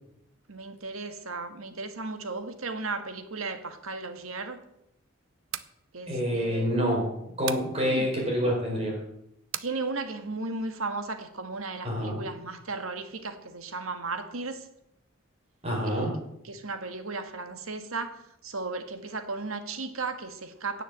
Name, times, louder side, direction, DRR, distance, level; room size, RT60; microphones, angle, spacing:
voice 1, 0.5-4.6 5.9-6.7 7.8-8.1 9.6-14.7 15.8-16.1 16.4-20.8, right 3 dB, 85° right, 8 dB, 1.7 m, -35 dB
sound 1, 5.3-5.8 7.5-7.7 9.5-9.7, right 12 dB, 65° right, 0.7 m, -35 dB
voice 2, 6.1-7.1 7.4-9.0 11.8-12.2 15.6-16.1, equal, 30° right, -1 dB, 4.9 m, -27 dB
17.0 x 7.0 x 7.6 m, 0.80 s
head